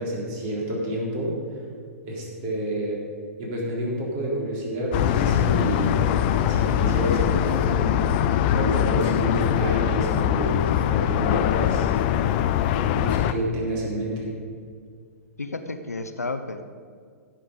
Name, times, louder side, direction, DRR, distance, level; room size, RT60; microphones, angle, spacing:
voice 1, 0.0-1.4 2.1-3.0 3.4-6.0 6.5-8.0 8.5-11.9 12.9-14.3, right 1 dB, 40° right, -3 dB, 3.8 m, -29 dB
sound 1, 4.9-13.3, left 10 dB, 40° left, 0.6 m, -22 dB
voice 2, 15.4-16.6, left 3 dB, 85° left, 8 dB, 0.7 m, -31 dB
15.5 x 7.7 x 5.2 m, 2.1 s
figure-of-eight pair, 110°, 8 cm